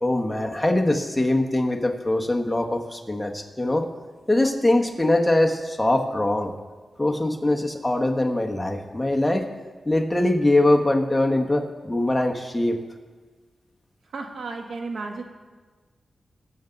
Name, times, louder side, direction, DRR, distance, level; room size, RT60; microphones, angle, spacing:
voice 1, 0.0-3.9 4.3-6.5 7.0-9.4 9.8-12.8, left 1 dB, 10° left, 2 dB, 1.3 m, -22 dB
voice 2, 14.1-15.2, right 3 dB, 85° right, 3 dB, 1.4 m, -33 dB
20.5 x 7.2 x 4.0 m, 1.4 s
wide cardioid pair, 90°, 0 cm